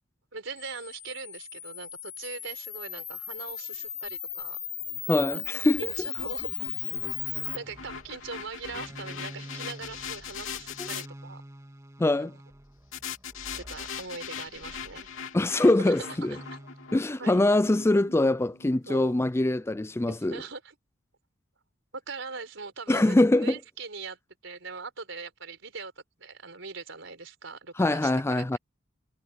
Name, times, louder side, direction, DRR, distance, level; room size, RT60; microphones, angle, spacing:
voice 1, 0.3-4.6 5.1-5.4 5.8-6.5 7.5-11.4 12.0-12.4 13.5-15.1 15.6-16.2 17.2-17.4 18.9-19.1 20.1-20.8 22.1-25.9 26.2-28.5, right 4 dB, 70° right, 5.4 m, -41 dB
Camera, 0.6-7.6, left 10 dB, 30° left, 1.3 m, -36 dB
sound 1, 4.9-11.1 12.9-19.1, left 6 dB, 85° left, 3.2 m, -41 dB
voice 2, 5.1-5.8 10.8-10.9 12.0-12.3 15.3-16.4 16.9-20.4 22.9-23.6 27.8-28.6, left 2 dB, 15° left, 0.4 m, -23 dB
sound 2, 5.7-15.3 15.9-17.0, right 1 dB, 15° right, 2.5 m, -48 dB
head